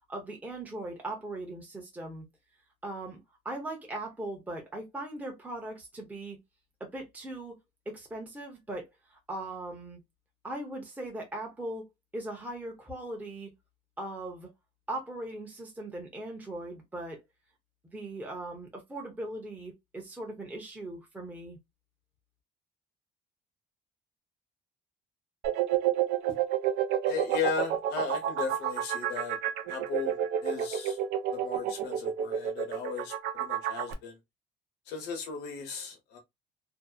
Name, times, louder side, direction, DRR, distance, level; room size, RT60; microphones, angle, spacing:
voice 1, 0.1-2.3 2.8-3.2 3.4-6.4 6.8-7.6 7.9-10.0 10.4-11.8 12.1-13.5 14.0-14.5 14.9-17.2 17.9-21.6, right 1 dB, 10° right, 0.7 m, -39 dB
sound 1, 25.4-33.9, right 10 dB, 85° right, 0.5 m, -29 dB
voice 2, 27.1-29.4 29.7-30.1 30.4-31.0 31.3-34.2 34.9-36.2, left 6 dB, 80° left, 0.8 m, -36 dB
2.6 x 2.0 x 2.3 m
cardioid pair, 110°, 17 cm